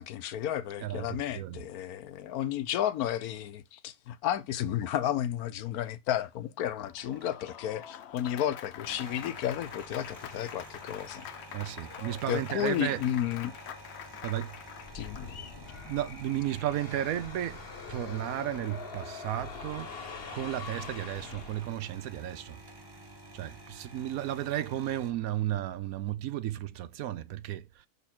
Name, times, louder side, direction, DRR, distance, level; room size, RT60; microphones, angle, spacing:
voice 1, 0.0-11.2 12.3-13.5 14.9-15.4, left 11 dB, 80° left, 1.2 m, -32 dB
voice 2, 0.8-1.6 11.5-13.0 14.2-14.5 15.9-20.0 20.3-22.6 23.3-27.6, right 12 dB, 75° right, 1.0 m, -34 dB
Applause, 6.9-15.6, left 10 dB, 60° left, 0.7 m, -45 dB
sound 1, 6.9-8.0 8.7-25.1, right 1 dB, 20° right, 0.8 m, -50 dB
sound 2, 14.8-22.0, left 5 dB, 45° left, 1.1 m, -44 dB
7.0 x 4.2 x 4.3 m
omnidirectional pair, 1.6 m